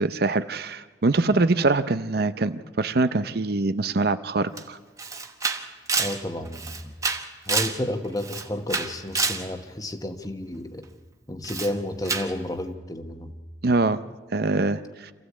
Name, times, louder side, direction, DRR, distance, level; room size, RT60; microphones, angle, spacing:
voice 1, 0.0-4.8 13.6-14.0 14.3-15.1, right 3 dB, 60° right, 12 dB, 0.7 m, -24 dB
Camera, 4.6-4.7 5.0-7.8 8.2-9.5 11.4-11.7 12.0-12.3, right 4 dB, 20° right, 1.2 m, -28 dB
voice 2, 6.0-6.9 7.5-10.9 11.3-13.4, left 1 dB, 20° left, 7 dB, 1.3 m, -31 dB
26.5 x 15.0 x 8.5 m, 1.3 s
head